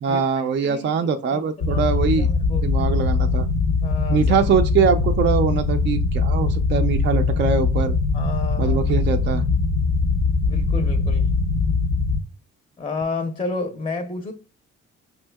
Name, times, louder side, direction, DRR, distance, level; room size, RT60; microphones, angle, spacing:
voice 1, 0.0-2.3 2.6-3.5 4.1-7.9 8.6-9.4, right 6 dB, 40° right, 0.4 m, -22 dB
voice 2, 0.6-1.4 1.7-2.7 3.8-4.3 8.1-8.8 10.5-11.3 12.8-14.3, left 3 dB, 15° left, 0.6 m, -31 dB
sound 1, 1.6-12.2, left 4 dB, 65° left, 0.6 m, -21 dB
5.3 x 2.7 x 2.2 m
cardioid pair, 90°, 30 cm